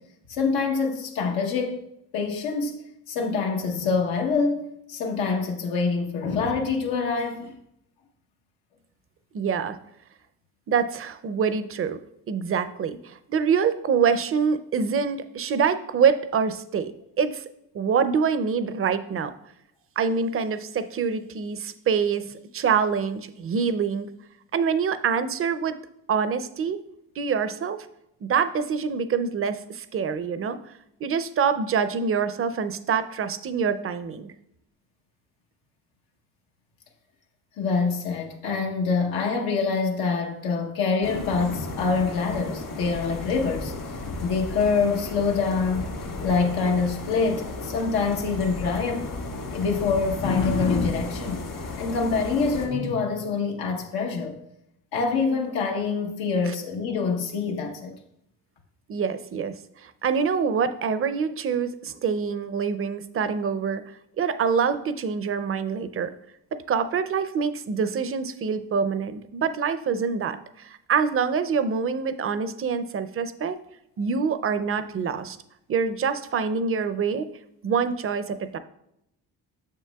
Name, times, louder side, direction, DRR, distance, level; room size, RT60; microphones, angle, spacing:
voice 1, 0.3-1.8 2.1-7.6 37.6-43.7 44.2-45.9 46.2-49.1 49.5-51.4 51.8-54.4 54.9-57.9, left 4 dB, 85° left, 1.1 m, -25 dB
voice 2, 9.3-9.8 10.7-12.0 12.3-17.4 17.7-19.3 20.0-24.1 24.5-25.7 26.1-26.8 27.2-27.9 28.2-30.6 31.0-34.3 56.5-56.6 58.9-66.1 66.7-73.6 74.0-75.4 75.7-77.3 77.6-78.6, right 6 dB, 40° right, 0.5 m, -25 dB
sound 1, 41.0-52.7, left 3 dB, 60° left, 1.9 m, -34 dB
7.4 x 6.3 x 2.3 m
cardioid pair, 80°, 37 cm